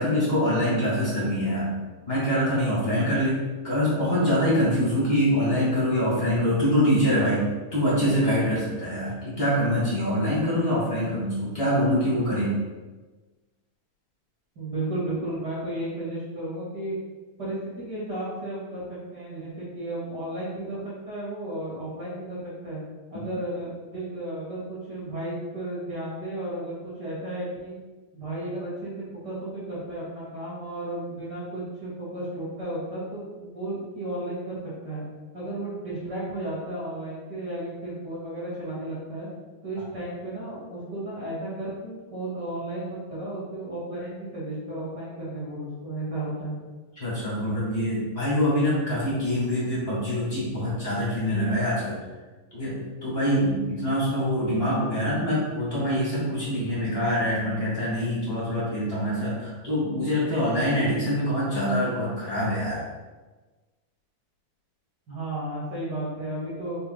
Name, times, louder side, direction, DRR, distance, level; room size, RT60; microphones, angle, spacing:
voice 1, 0.0-1.7 2.1-3.4 3.6-7.4 7.7-12.5 47.0-52.0 52.5-62.8, equal, 25° left, -8 dB, 1.3 m, -24 dB
voice 2, 14.6-17.0 17.4-22.8 23.1-27.8 28.1-34.6 34.8-35.0 35.3-39.3 39.6-46.5 65.1-66.8, right 1 dB, 35° right, -8 dB, 1.9 m, -33 dB
5.7 x 4.5 x 3.9 m, 1.3 s
omnidirectional pair, 4.4 m